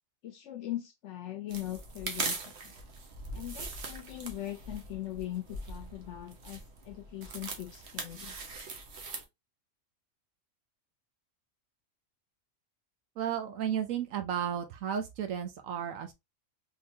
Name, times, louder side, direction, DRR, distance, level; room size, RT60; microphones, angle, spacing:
voice 1, 0.2-2.7 3.3-8.4, left 14 dB, 70° left, 0.8 m, -40 dB
sound 1, 1.5-9.2, right 3 dB, 60° right, 1.1 m, -41 dB
voice 2, 13.2-16.1, right 9 dB, 80° right, 1.1 m, -33 dB
3.8 x 2.9 x 2.7 m
omnidirectional pair, 1.4 m